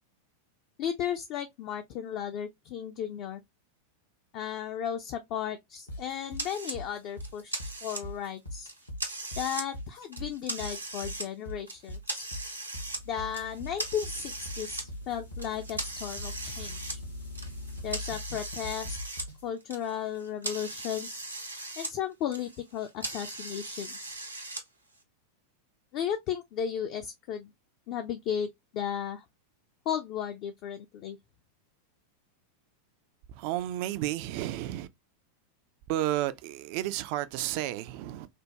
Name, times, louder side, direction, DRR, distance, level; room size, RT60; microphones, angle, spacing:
voice 1, 0.8-3.4 4.3-8.7 9.4-12.3 13.1-17.0 17.8-19.0 19.4-21.2 21.8-24.1 25.9-27.5 27.9-28.5 28.7-29.2 29.9-31.2, left 9 dB, 40° left, 0.4 m, -35 dB
sound 1, 5.9-19.4, left 1 dB, 80° left, 1.1 m, -41 dB
sound 2, 6.4-6.8 7.2-8.3 8.7-9.7 10.0-11.3 11.7-13.0 13.3-14.8 15.4-19.3 19.6-21.9 22.2-24.6, right 2 dB, 85° right, 0.8 m, -38 dB
voice 2, 33.3-34.9 35.9-38.3, right 14 dB, 45° right, 0.3 m, -32 dB
3.4 x 2.2 x 2.8 m
figure-of-eight pair, 90°, 0 cm